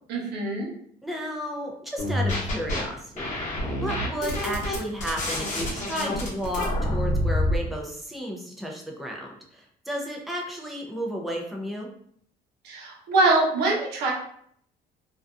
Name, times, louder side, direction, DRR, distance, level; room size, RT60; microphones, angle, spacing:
voice 1, 0.1-0.7 12.6-14.1, right 2 dB, 85° right, -2 dB, 0.8 m, -23 dB
voice 2, 1.0-3.3 3.7-11.9, equal, ahead, 0 dB, 0.5 m, -33 dB
sound 1, 2.0-2.8 3.2-7.6, left 1 dB, 45° left, 1.0 m, -27 dB
2.5 x 2.2 x 2.4 m, 0.64 s
cardioid pair, 110°, 17 cm